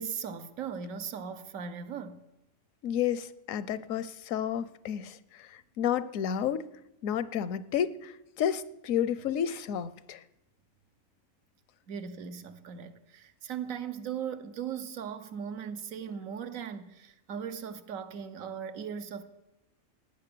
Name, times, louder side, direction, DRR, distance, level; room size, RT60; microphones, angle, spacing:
voice 1, 0.0-2.2 11.9-19.2, right 7 dB, 85° right, 1.3 m, -38 dB
voice 2, 2.8-6.7 7.0-10.2, left 9 dB, 80° left, 1.1 m, -31 dB
17.5 x 9.4 x 6.8 m
omnidirectional pair, 1.4 m